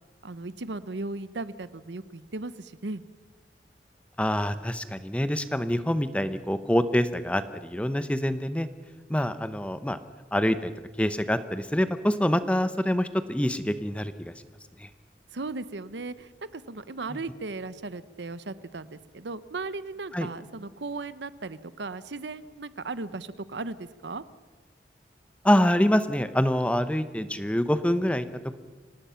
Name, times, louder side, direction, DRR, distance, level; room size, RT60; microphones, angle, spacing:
voice 1, 0.2-3.0 15.3-24.2, right 3 dB, 85° right, 15 dB, 0.8 m, -36 dB
voice 2, 4.2-8.7 9.1-10.0 10.3-10.7 11.0-14.3 14.8-14.9 17.1-17.2 20.1-20.3 25.4-28.3, equal, 5° left, 11 dB, 0.8 m, -25 dB
26.0 x 19.0 x 5.8 m, 1.3 s
head